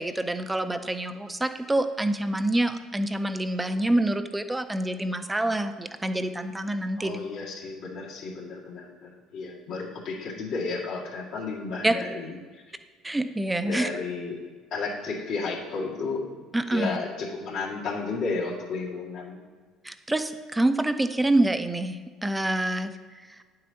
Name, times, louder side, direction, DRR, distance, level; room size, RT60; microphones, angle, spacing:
voice 1, 0.0-7.2 11.8-12.0 13.0-13.9 16.5-17.0 19.8-22.9, right 1 dB, 15° right, 9 dB, 0.6 m, -26 dB
voice 2, 7.0-12.4 13.6-14.4 14.7-16.3 16.7-19.4, left 4 dB, 70° left, -4 dB, 1.8 m, -33 dB
9.0 x 7.7 x 2.8 m, 1.5 s
hypercardioid pair, 70°, 0 cm